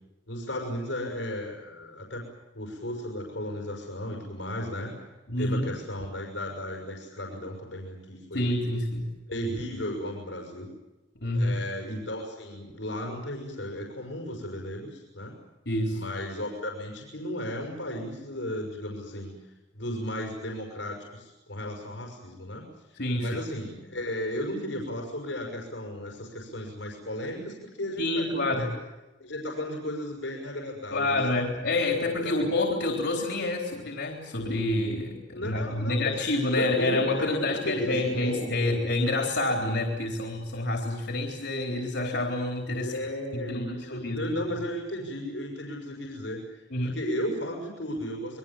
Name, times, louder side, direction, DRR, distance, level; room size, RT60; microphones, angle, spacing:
voice 1, 0.3-2.3 2.5-4.9 5.4-8.6 9.3-10.7 11.3-15.4 15.9-19.3 19.7-28.7 29.2-31.4 32.2-32.5 35.3-36.1 36.5-38.8 42.7-48.4, equal, 90° left, 0 dB, 5.9 m, -35 dB
voice 2, 5.3-5.7 8.3-9.1 11.2-11.6 15.7-16.0 23.0-23.4 28.0-28.7 30.9-43.0 43.3-44.2 46.7-47.0, left 2 dB, 65° left, 2 dB, 3.9 m, -28 dB
28.0 x 22.5 x 7.5 m, 1.1 s
head